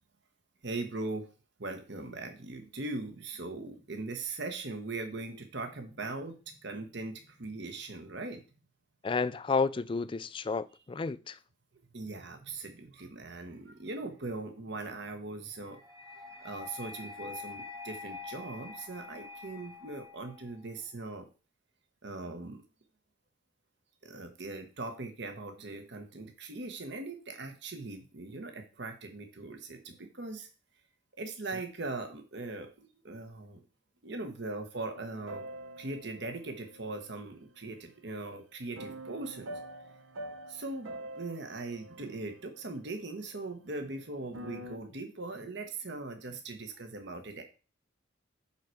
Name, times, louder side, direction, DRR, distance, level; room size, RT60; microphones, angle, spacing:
voice 1, 0.6-1.3 1.6-8.4 11.7-15.8 16.4-21.3 22.0-22.6 24.0-30.5 31.2-33.6 34.0-35.4 35.8-39.6 40.5-47.4, right 2 dB, 60° right, 1.1 m, -40 dB
voice 2, 9.0-11.4, left 4 dB, 25° left, 0.3 m, -31 dB
sound 1, 15.6-20.7, left 4 dB, 15° right, 0.9 m, -46 dB
sound 2, 34.9-37.7 38.8-43.2 44.1-44.8, right 1 dB, 85° right, 0.8 m, -46 dB
5.7 x 4.5 x 6.2 m
head